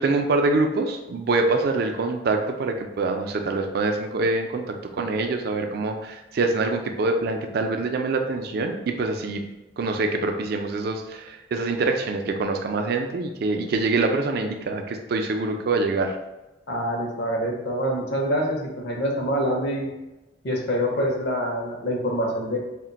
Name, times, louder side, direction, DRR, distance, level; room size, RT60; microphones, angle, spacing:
voice 1, 0.0-9.4 9.8-16.2, right 3 dB, 55° right, 5 dB, 0.3 m, -25 dB
voice 2, 16.7-19.9 20.4-22.6, equal, 65° left, -1 dB, 0.6 m, -25 dB
2.4 x 2.1 x 3.9 m, 1.0 s
head